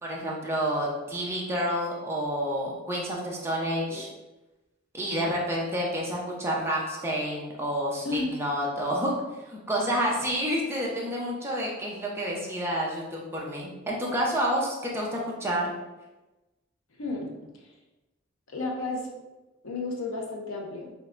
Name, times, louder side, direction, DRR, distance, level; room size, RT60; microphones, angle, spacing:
voice 1, 0.0-4.1 4.9-9.1 9.4-15.7, equal, 10° right, -4 dB, 0.8 m, -29 dB
voice 2, 17.0-17.3 18.5-19.1 19.6-20.9, left 3 dB, 80° left, 0 dB, 0.7 m, -32 dB
6.2 x 2.3 x 2.6 m, 1.1 s
head